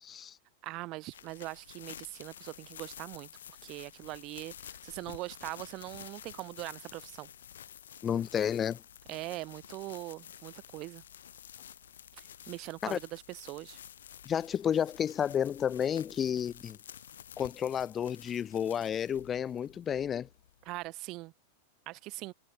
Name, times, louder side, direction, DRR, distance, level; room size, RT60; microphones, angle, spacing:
voice 1, 0.0-0.4 8.0-8.8 12.8-13.0 14.3-16.8 17.4-20.3, left 8 dB, 25° left, 0.3 m, -31 dB
voice 2, 0.6-3.3 3.6-7.3 9.1-11.0 12.2-13.8 20.7-21.3 21.9-22.3, right 21 dB, 40° right, 0.4 m, -41 dB
sound 1, 1.1-20.9, left 9 dB, 65° left, 4.2 m, -51 dB
figure-of-eight pair, 90°, 0 cm